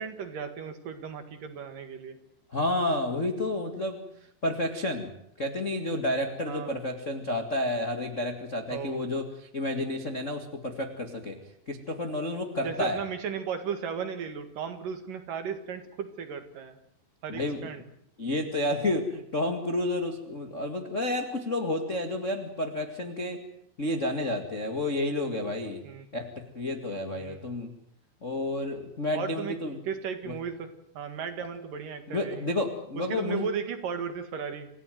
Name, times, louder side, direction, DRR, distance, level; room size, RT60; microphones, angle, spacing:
voice 1, 0.0-2.2 6.5-6.7 8.7-9.0 12.6-16.8 17.2-17.8 25.8-26.1 27.1-27.4 29.1-29.6 29.9-32.4 33.1-34.7, right 7 dB, 60° right, 9 dB, 3.1 m, -35 dB
voice 2, 2.5-4.0 4.4-5.1 5.4-11.4 11.7-13.0 17.3-17.7 18.2-23.4 23.8-25.8 26.1-27.7 28.2-29.8 31.4-31.5 32.1-33.5, left 1 dB, 35° left, 4 dB, 1.2 m, -30 dB
28.0 x 16.5 x 9.2 m, 0.73 s
omnidirectional pair, 4.9 m